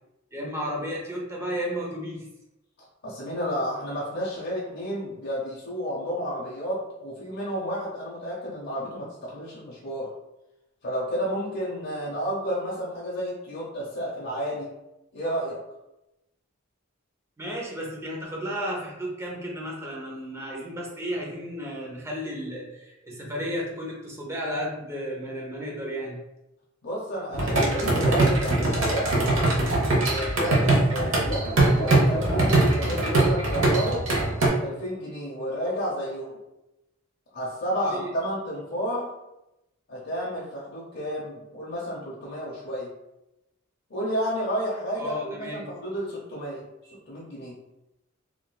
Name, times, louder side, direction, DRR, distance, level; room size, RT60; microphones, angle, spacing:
voice 1, 0.3-2.2 17.4-26.2 37.8-38.1 45.0-45.6, equal, 15° right, -2 dB, 0.7 m, -33 dB
voice 2, 3.0-10.1 10.8-14.7 15.1-15.6 26.8-29.3 30.0-34.2 34.6-36.4 37.3-39.1 39.9-42.9 43.9-47.5, equal, 60° left, -5 dB, 0.7 m, -31 dB
sound 1, 27.3-34.5, right 2 dB, 85° right, 0.9 m, -22 dB
3.7 x 2.4 x 2.2 m, 0.91 s
head